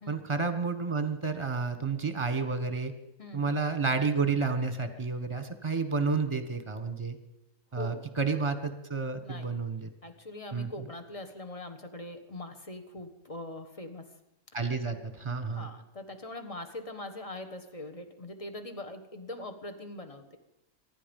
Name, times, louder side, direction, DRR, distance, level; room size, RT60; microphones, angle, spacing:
voice 1, 0.1-2.9 3.3-7.2 7.7-9.9 10.5-10.7 14.5-15.7, right 4 dB, 20° right, 9 dB, 1.4 m, -30 dB
voice 2, 3.2-3.5 7.8-8.1 9.2-9.6 10.0-14.1 15.5-20.4, left 2 dB, 25° left, 7 dB, 1.4 m, -42 dB
24.5 x 11.0 x 5.4 m, 0.91 s
omnidirectional pair, 1.4 m